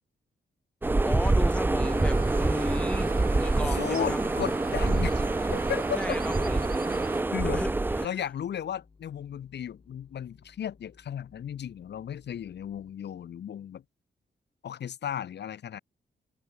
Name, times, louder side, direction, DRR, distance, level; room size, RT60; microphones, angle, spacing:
sound 1, 0.8-8.1, right 2 dB, 10° right, 0.5 m, -26 dB
voice 1, 1.0-4.2 6.0-6.7 7.4-8.1, left 1 dB, 5° left, 1.0 m, -35 dB
sound 2, 1.8-7.2, right 7 dB, 55° right, 2.0 m, -41 dB
voice 2, 3.6-5.2 5.5-6.0 7.3-7.6 8.0-13.8 14.6-15.8, left 9 dB, 75° left, 1.3 m, -35 dB
sound 3, 7.0-12.9, left 4 dB, 30° left, 4.1 m, -59 dB
wide cardioid pair, 160°, 18 cm